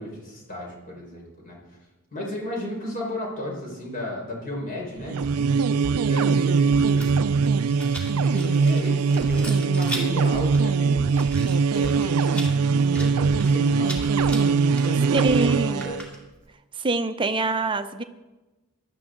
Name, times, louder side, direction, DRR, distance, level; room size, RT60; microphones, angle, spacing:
voice 1, 0.0-1.6 2.1-7.2 8.2-11.3 11.6-12.4 12.7-15.1 15.8-16.0, left 1 dB, 40° left, -2 dB, 4.8 m, -34 dB
sound 1, 5.0-16.0, right 5 dB, 85° right, 0.5 m, -21 dB
Rattle, 6.9-16.5, equal, 5° left, 2.4 m, -40 dB
voice 2, 15.1-16.0 16.7-18.0, right 3 dB, 20° right, 8 dB, 0.7 m, -25 dB
17.0 x 12.5 x 3.8 m, 1.1 s
head